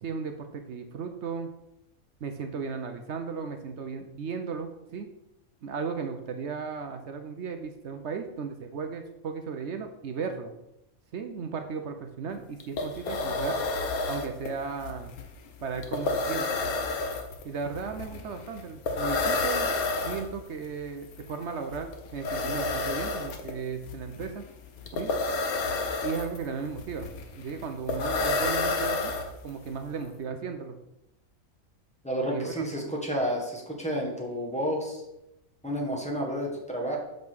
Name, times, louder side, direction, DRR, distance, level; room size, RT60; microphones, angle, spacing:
voice 1, 0.0-1.5 2.2-5.1 5.6-10.5 11.1-13.6 14.1-15.1 15.6-16.5 17.4-19.7 20.0-24.4 24.9-25.1 26.0-29.1 29.4-30.8 32.3-32.9, right 5 dB, 60° right, 6 dB, 0.9 m, -35 dB
sound 1, 12.3-12.4 12.6-29.7, left 3 dB, 85° left, 1.4 m, -30 dB
voice 2, 32.0-35.0 35.6-37.0, equal, 5° left, -2 dB, 1.4 m, -30 dB
5.3 x 5.3 x 6.1 m, 0.88 s
omnidirectional pair, 1.5 m